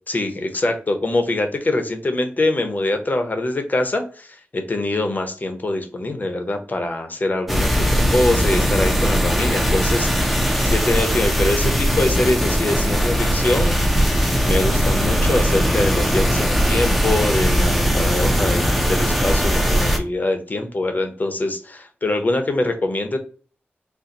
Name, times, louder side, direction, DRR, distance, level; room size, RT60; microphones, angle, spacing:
voice 1, 0.1-14.1 14.4-23.2, left 2 dB, 45° left, 6 dB, 0.8 m, -24 dB
sound 1, 7.5-20.0, equal, ahead, 0.6 m, -19 dB
4.3 x 2.2 x 3.9 m, 0.40 s
wide cardioid pair, 90°, 4 cm